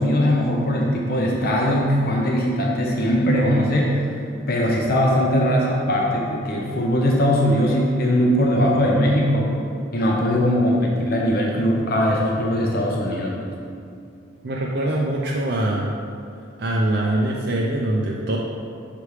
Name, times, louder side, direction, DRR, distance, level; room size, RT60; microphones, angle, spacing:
voice 1, 0.0-4.1 4.5-9.5 9.9-13.4, equal, 50° left, -2 dB, 0.6 m, -20 dB
voice 2, 14.4-15.9 16.6-18.4, right 1 dB, 55° right, -3 dB, 0.5 m, -23 dB
6.7 x 3.4 x 4.7 m, 2.5 s
head